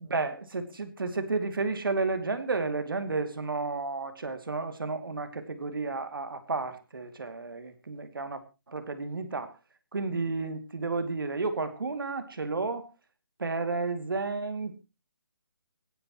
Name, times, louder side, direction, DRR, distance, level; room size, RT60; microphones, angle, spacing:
voice 1, 0.0-8.4 8.7-9.5 9.9-12.9 13.4-14.8, right 3 dB, 70° right, 9 dB, 2.5 m, -32 dB
25.5 x 10.0 x 3.1 m, 0.29 s
hypercardioid pair, 180°, 12 cm